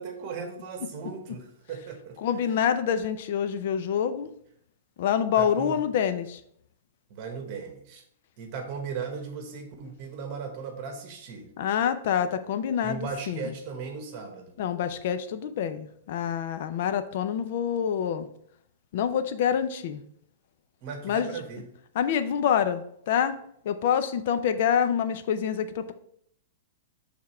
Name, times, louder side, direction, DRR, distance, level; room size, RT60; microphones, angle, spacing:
voice 1, 0.0-2.5 5.4-5.8 7.1-8.0 8.4-11.5 12.8-14.6 20.8-21.6, right 5 dB, 30° right, 4 dB, 1.1 m, -37 dB
voice 2, 2.2-4.3 5.0-6.4 11.6-13.5 14.6-18.3 18.9-20.0 21.0-21.3 21.9-23.3 23.6-25.9, left 8 dB, 45° left, 11 dB, 0.5 m, -26 dB
6.8 x 3.6 x 4.3 m, 0.68 s
hypercardioid pair, 170°, 0 cm